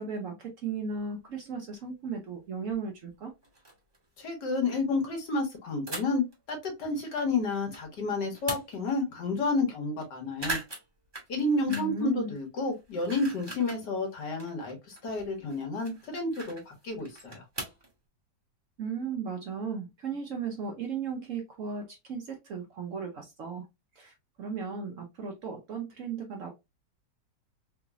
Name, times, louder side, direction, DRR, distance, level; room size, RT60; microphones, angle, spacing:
voice 1, 0.0-3.3 11.7-12.3 18.8-23.7 23.9-26.5, right 5 dB, 60° right, 0.9 m, -36 dB
sound 1, 0.9-1.0 2.1-2.2 2.7-2.8 3.1-3.2 3.4-4.0 5.9-6.3 6.8-7.8 8.2-9.0 9.4-9.5 9.7-10.0 10.3-12.1 12.4-13.8 14.2-17.9, right 2 dB, 15° right, 1.0 m, -40 dB
voice 2, 4.2-10.6 11.3-14.8 15.0-17.4, left 3 dB, 70° left, 1.8 m, -30 dB
3.8 x 2.9 x 2.4 m
omnidirectional pair, 1.9 m